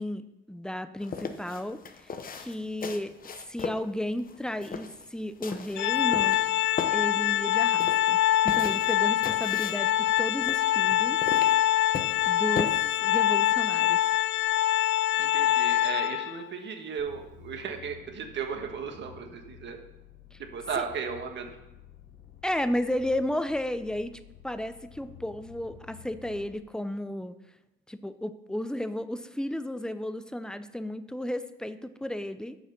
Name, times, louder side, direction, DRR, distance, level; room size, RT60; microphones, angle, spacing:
voice 1, 0.0-3.1 3.5-6.4 6.9-8.2 8.4-11.2 12.2-14.0 20.3-20.4 20.7-20.8 22.4-27.4 27.9-32.6, left 1 dB, 5° left, 12 dB, 0.6 m, -33 dB
sound 1, 1.0-12.6, left 6 dB, 45° left, 0.9 m, -38 dB
Organ, 5.8-16.5, left 12 dB, 65° left, 0.4 m, -24 dB
voice 2, 15.2-19.8 20.4-21.5, right 6 dB, 65° right, 5 dB, 1.4 m, -35 dB
sound 2, 17.0-26.5, left 8 dB, 90° left, 1.3 m, -52 dB
8.1 x 6.3 x 6.8 m, 0.94 s
cardioid pair, 90°, 20 cm